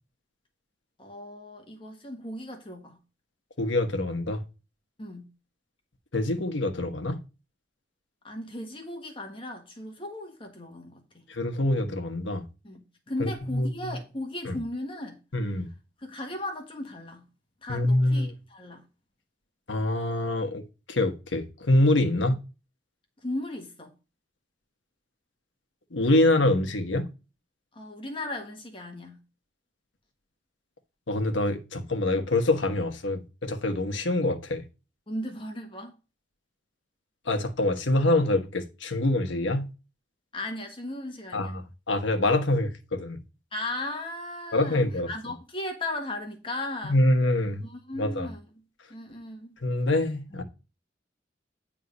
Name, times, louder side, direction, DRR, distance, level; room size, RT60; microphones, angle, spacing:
voice 1, 1.0-3.0 5.0-5.3 8.2-11.2 12.6-15.2 16.0-17.3 17.6-18.8 23.2-23.9 27.7-29.2 35.1-35.9 40.3-41.6 43.5-47.0 47.6-48.5 48.9-49.6, left 1 dB, 30° left, 1.4 m, -36 dB
voice 2, 3.6-4.4 6.1-7.2 11.3-12.4 13.2-14.0 14.4-14.6 15.3-15.7 17.7-18.3 19.7-20.6 20.9-22.3 25.9-27.1 31.1-34.6 37.3-39.7 41.3-43.2 44.5-45.1 46.8-47.6 48.0-48.3 49.6-50.4, left 1 dB, 85° left, 1.3 m, -25 dB
9.7 x 3.7 x 5.2 m
head